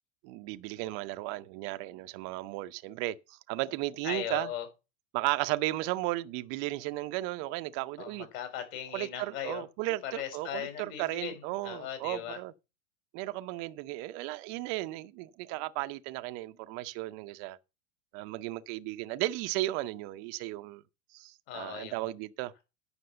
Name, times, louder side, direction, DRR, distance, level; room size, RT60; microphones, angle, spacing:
voice 1, 0.2-4.5 5.1-8.3 8.9-12.5 13.1-17.6 18.1-20.8 21.1-22.5, right 17 dB, 35° right, 0.6 m, -35 dB
voice 2, 4.0-4.7 8.0-12.4 21.5-22.1, left 10 dB, 45° left, 4.4 m, -39 dB
9.6 x 6.0 x 6.7 m
supercardioid pair, 145°, 42 cm